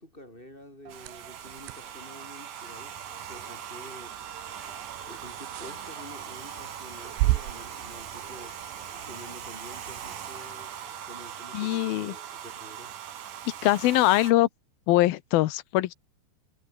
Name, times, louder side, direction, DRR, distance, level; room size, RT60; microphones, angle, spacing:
voice 1, 0.0-3.0 3.3-4.2 5.0-8.6 9.1-10.8 11.0-13.0, left 1 dB, 10° left, 7.2 m, -48 dB
Domestic sounds home sounds, 0.9-14.3, right 10 dB, 55° right, 2.9 m, -41 dB
sound 1, 0.9-9.2, right 18 dB, 85° right, 3.2 m, -35 dB
sound 2, 1.2-12.1, left 4 dB, 30° left, 4.5 m, -53 dB
voice 2, 11.5-12.1 13.6-14.5 14.9-15.9, left 17 dB, 75° left, 2.3 m, -22 dB
omnidirectional pair, 5.3 m